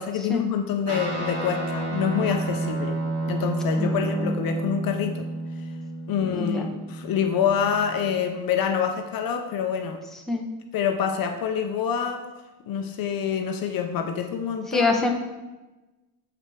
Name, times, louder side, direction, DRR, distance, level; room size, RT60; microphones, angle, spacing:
voice 1, 0.0-3.0 3.3-5.3 6.1-10.0 10.7-12.3 12.7-14.9, left 7 dB, 50° left, 5 dB, 0.9 m, -26 dB
Guitar, 0.9-8.5, right 2 dB, 30° right, 2.3 m, -31 dB
voice 2, 3.8-4.3 6.3-6.7 10.3-10.5 14.7-15.1, left 3 dB, ahead, 0 dB, 1.1 m, -25 dB
7.2 x 5.9 x 4.7 m, 1.1 s
cardioid pair, 115°, 45 cm